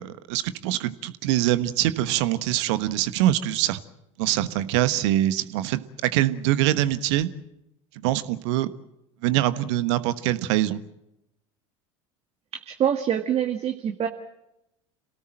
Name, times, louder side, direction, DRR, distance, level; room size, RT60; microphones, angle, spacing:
voice 1, 0.0-3.8 4.2-7.3 7.9-8.7 9.2-10.8, right 14 dB, 65° right, 14 dB, 1.3 m, -24 dB
voice 2, 12.7-14.1, right 9 dB, 40° right, 5 dB, 1.8 m, -25 dB
27.5 x 18.0 x 7.7 m, 0.89 s
figure-of-eight pair, 75°, 16 cm